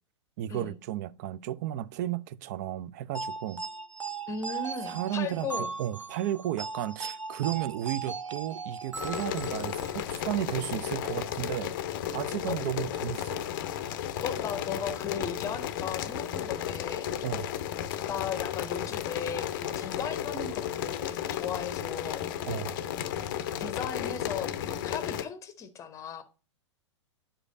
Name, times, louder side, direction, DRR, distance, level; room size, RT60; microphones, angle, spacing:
voice 1, 0.4-3.6 4.9-5.5 5.8-11.7 12.1-13.4 17.2-17.5 22.5-22.8, right 12 dB, 35° right, 0.4 m, -33 dB
sound 1, 3.1-10.0, right 5 dB, 85° right, 0.5 m, -38 dB
voice 2, 4.3-5.7 12.5-12.6 14.2-17.1 18.1-22.3 23.6-26.2, left 7 dB, 20° left, 0.8 m, -36 dB
sound 2, 8.9-25.2, left 10 dB, 45° left, 0.6 m, -34 dB
9.9 x 4.9 x 2.5 m
figure-of-eight pair, 100°, 15 cm